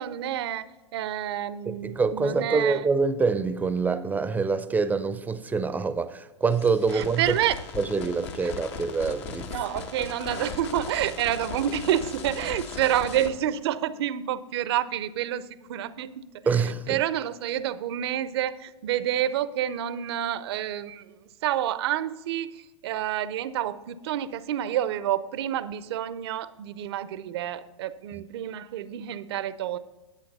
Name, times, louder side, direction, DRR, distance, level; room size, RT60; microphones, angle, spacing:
voice 1, 0.0-2.9 6.9-7.6 8.4-8.5 9.5-29.8, right 11 dB, 60° right, 0.6 m, -29 dB
voice 2, 1.7-7.2 7.8-9.5 16.5-17.0, right 4 dB, 10° right, 0.6 m, -25 dB
sound 1, 6.5-13.3, left 5 dB, 65° left, 1.3 m, -38 dB
10.5 x 8.3 x 4.1 m
hypercardioid pair, 105°, 15 cm